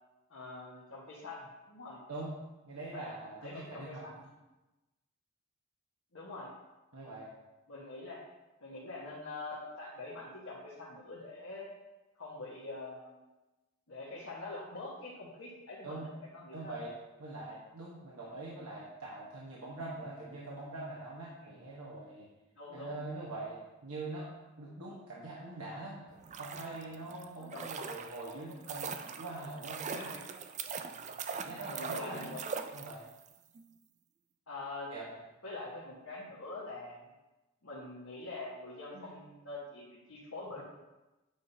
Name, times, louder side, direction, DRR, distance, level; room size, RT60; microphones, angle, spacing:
voice 1, 0.3-2.0 2.9-3.1 3.4-4.2 6.1-6.5 7.7-8.2 8.6-11.7 12.2-13.1 13.9-16.7 21.4-21.5 22.5-22.9 27.4-27.7 29.9-30.2 31.7-32.5 34.5-34.9 35.4-37.1 37.6-40.6, left 2 dB, 65° left, -7 dB, 1.4 m, -44 dB
voice 2, 2.7-4.0 6.9-7.3 15.8-16.1 16.5-16.9 17.2-22.3 22.7-24.3 24.6-28.9 29.2-30.1 31.3-32.3 32.7-33.0 34.9-35.1 38.9-39.1 40.6-40.7, right 2 dB, 75° right, -6 dB, 1.2 m, -43 dB
sound 1, 26.1-33.3 33.5-33.6, right 6 dB, 30° right, 0.3 m, -41 dB
8.8 x 5.6 x 2.8 m, 1.1 s
head